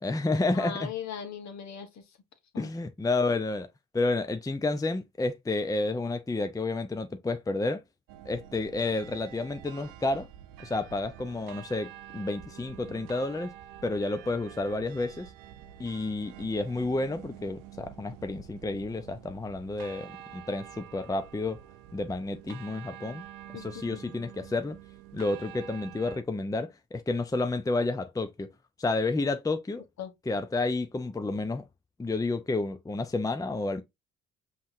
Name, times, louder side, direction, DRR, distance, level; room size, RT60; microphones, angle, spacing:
voice 1, 0.0-0.9 2.6-3.7 3.9-7.8 8.2-10.3 10.6-13.5 13.8-15.3 15.8-21.6 21.9-23.2 23.5-24.8 25.1-28.5 28.8-29.8 30.3-31.6 32.0-33.8, left 2 dB, 10° left, 0.6 m, -30 dB
voice 2, 0.5-2.0 2.5-2.7 23.5-24.0 30.0-30.1, left 8 dB, 55° left, 1.4 m, -39 dB
sound 1, 8.1-26.2, right 11 dB, 75° right, 0.5 m, -48 dB
5.5 x 3.2 x 2.6 m
hypercardioid pair, 55°, 32 cm